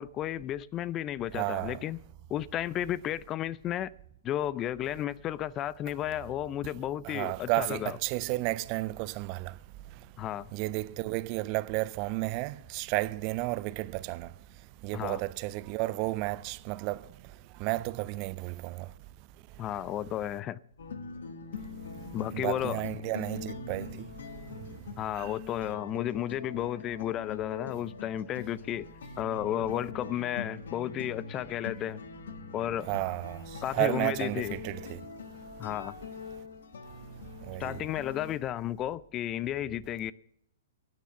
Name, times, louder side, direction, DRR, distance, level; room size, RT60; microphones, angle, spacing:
voice 1, 0.0-2.0 2.3-3.9 4.2-8.0 10.2-10.5 14.9-15.2 19.6-20.6 22.1-22.8 25.0-28.9 29.2-32.0 32.5-32.9 33.6-34.6 35.6-35.9 37.6-40.1, left 12 dB, 25° left, 0.4 m, -33 dB
voice 2, 1.3-1.8 7.0-9.5 10.5-14.3 14.8-17.0 17.6-18.9 22.3-24.1 25.2-25.3 32.9-35.0 37.5-37.8, right 20 dB, 40° right, 0.6 m, -32 dB
sound 1, 20.8-38.3, left 5 dB, 65° left, 1.3 m, -43 dB
13.0 x 9.3 x 6.9 m
figure-of-eight pair, 115°, 0 cm